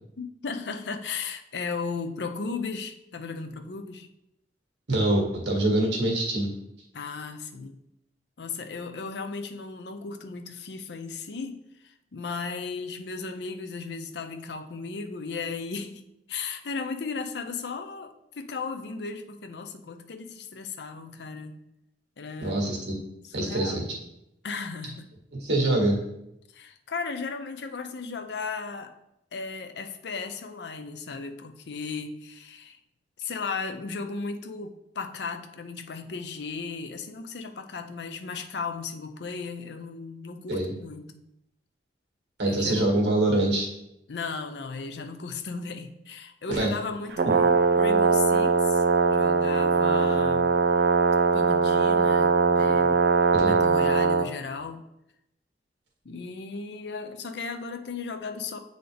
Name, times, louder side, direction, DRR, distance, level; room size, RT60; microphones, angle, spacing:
voice 1, 0.2-4.1 6.9-7.8 8.4-21.6 22.2-22.6 23.2-24.0 24.4-25.1 26.5-28.9 29.3-32.8 33.2-41.2 42.4-42.9 44.1-48.8 49.1-50.5 51.3-53.0 53.4-54.8 56.0-58.6, left 4 dB, 70° left, 8 dB, 0.6 m, -36 dB
voice 2, 4.9-6.5 22.4-22.9 23.3-23.8 25.3-26.0 40.5-40.7 42.4-43.7 46.5-46.7 53.3-53.5, right 1 dB, 80° right, 0 dB, 1.7 m, -24 dB
Brass instrument, 47.1-54.3, right 5 dB, 60° right, 0.4 m, -21 dB
8.0 x 3.9 x 3.4 m, 0.84 s
head